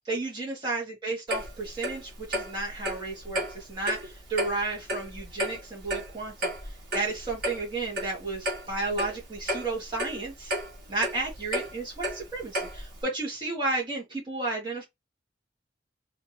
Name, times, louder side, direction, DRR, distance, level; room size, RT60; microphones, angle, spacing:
voice 1, 0.1-6.5 6.9-10.5 10.9-14.8, right 2 dB, 25° right, 1.9 m, -32 dB
Clock, 1.3-13.0, equal, 55° right, 1.7 m, -34 dB
4.1 x 2.8 x 3.0 m
head